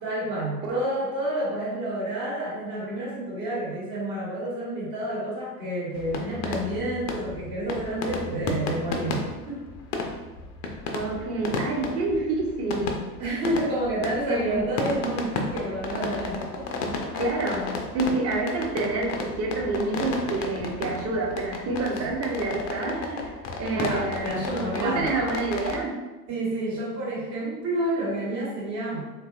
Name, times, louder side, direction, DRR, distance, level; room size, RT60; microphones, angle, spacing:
voice 1, 0.0-9.6 13.2-16.7 21.8-22.1 22.9-23.2 23.7-25.1 26.3-29.0, right 1 dB, 60° right, -8 dB, 1.2 m, -29 dB
sound 1, 5.9-25.8, left 3 dB, 40° left, 0.4 m, -33 dB
voice 2, 10.9-13.0 14.3-14.6 17.2-17.7 17.9-23.0 23.6-26.0, right 2 dB, 30° right, 0 dB, 0.6 m, -28 dB
3.0 x 2.3 x 2.4 m, 1.1 s
figure-of-eight pair, 70°, 46 cm